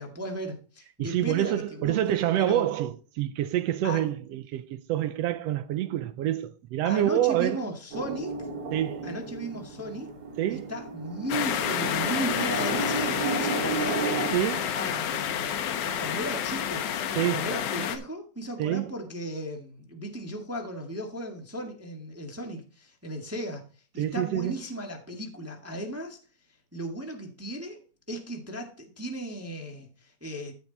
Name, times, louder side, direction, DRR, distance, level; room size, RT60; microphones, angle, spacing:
voice 1, 0.0-2.7 3.8-4.0 6.8-8.5 9.0-10.1 10.5-14.1 14.7-16.8 17.3-23.7 23.9-26.2 26.7-27.8 28.1-30.5, right 1 dB, 10° right, 1.1 m, -36 dB
voice 2, 1.0-7.7 8.7-9.1 10.4-10.7 14.3-14.8 17.2-17.4 18.6-18.9 24.0-24.5, right 12 dB, 75° right, 1.6 m, -27 dB
sound 1, 7.9-14.4, right 4 dB, 45° right, 4.6 m, -34 dB
sound 2, 11.3-18.0, left 9 dB, 90° left, 2.6 m, -29 dB
14.5 x 5.2 x 4.1 m
omnidirectional pair, 3.4 m